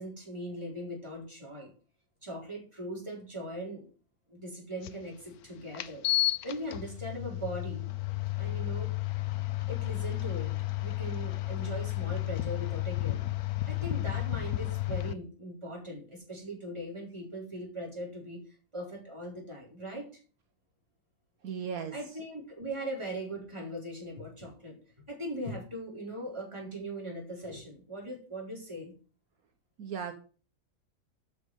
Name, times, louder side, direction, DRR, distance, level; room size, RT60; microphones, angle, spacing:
voice 1, 0.0-1.7 2.2-3.9 4.3-6.1 6.4-7.9 8.4-8.9 9.7-10.5 10.8-18.4 18.7-20.1 21.9-24.8 25.1-28.9, right 1 dB, 20° right, -2 dB, 4.3 m, -40 dB
sound 1, 4.8-4.9 5.7-15.1, left 17 dB, 85° left, 1.2 m, -32 dB
voice 2, 21.4-21.9 29.8-30.1, right 7 dB, 70° right, 6 dB, 1.4 m, -36 dB
8.2 x 6.5 x 8.0 m, 0.38 s
omnidirectional pair, 1.6 m